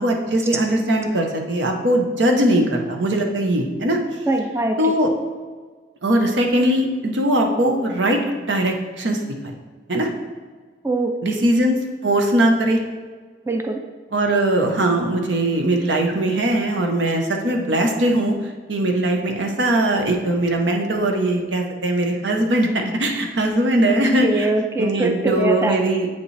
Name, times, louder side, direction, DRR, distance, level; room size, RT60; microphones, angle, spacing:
voice 1, 0.0-4.0 4.8-5.1 6.0-8.2 8.5-9.2 9.9-10.1 11.2-12.8 14.1-18.4 18.7-24.5 24.8-26.1, right 1 dB, 80° right, 2 dB, 0.9 m, -20 dB
voice 2, 4.3-4.9 10.8-11.1 13.5-13.8 23.9-25.8, right 2 dB, 15° right, 3 dB, 0.4 m, -22 dB
8.2 x 5.2 x 3.3 m, 1.5 s
head